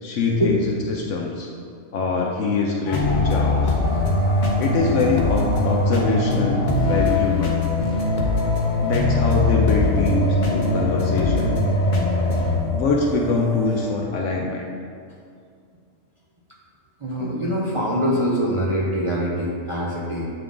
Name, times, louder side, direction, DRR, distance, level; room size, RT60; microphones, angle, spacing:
voice 1, 0.0-1.5 1.9-3.7 4.6-7.5 8.8-11.6 12.7-14.7, left 4 dB, 70° left, -1 dB, 0.9 m, -23 dB
sound 1, 2.9-12.6, left 2 dB, 45° left, 0.7 m, -21 dB
sound 2, 3.8-13.9, right 1 dB, ahead, 0.8 m, -35 dB
voice 2, 17.0-20.3, equal, 40° right, -5 dB, 0.4 m, -23 dB
7.6 x 3.5 x 3.7 m, 2.2 s
omnidirectional pair, 1.3 m